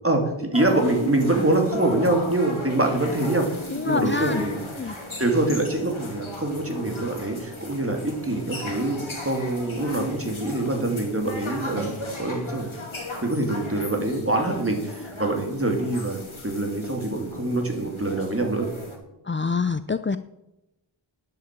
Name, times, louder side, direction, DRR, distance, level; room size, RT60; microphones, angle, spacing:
voice 1, 0.0-3.5 3.8-12.7 13.2-18.7, right 2 dB, 25° right, 2 dB, 3.0 m, -25 dB
sound 1, 0.5-19.0, left 2 dB, 75° left, 2.8 m, -37 dB
voice 2, 3.7-4.4 4.8-5.0 19.3-20.2, left 4 dB, 25° left, 12 dB, 0.4 m, -26 dB
10.5 x 8.0 x 8.5 m, 0.93 s
wide cardioid pair, 40°, 49 cm